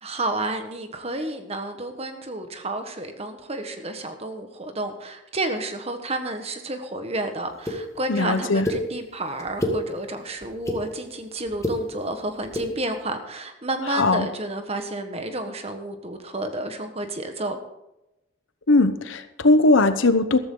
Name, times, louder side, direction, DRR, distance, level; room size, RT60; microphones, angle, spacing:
voice 1, 0.0-17.6, right 2 dB, 30° right, 7 dB, 1.4 m, -31 dB
sound 1, 7.7-7.8 8.6-8.8 9.4-9.8 10.4-10.8 11.5-11.8 12.4-12.7, left 1 dB, 15° left, 1.9 m, -26 dB
voice 2, 8.1-8.7 13.9-14.3 18.7-20.4, left 2 dB, 85° left, 11 dB, 1.0 m, -19 dB
14.0 x 13.5 x 3.9 m, 0.92 s
head